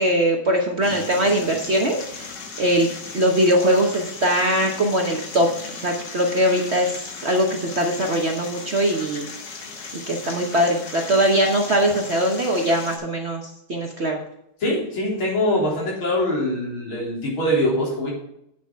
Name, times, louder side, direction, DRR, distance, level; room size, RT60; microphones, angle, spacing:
voice 1, 0.0-2.3 2.6-2.9 3.1-9.3 10.1-14.2, equal, 45° right, 1 dB, 1.0 m, -21 dB
sound 1, 0.8-13.0, left 4 dB, 60° left, 2.0 m, -37 dB
voice 2, 14.6-18.1, left 1 dB, 80° left, -3 dB, 4.3 m, -23 dB
8.6 x 7.1 x 4.5 m, 0.78 s
omnidirectional pair, 2.2 m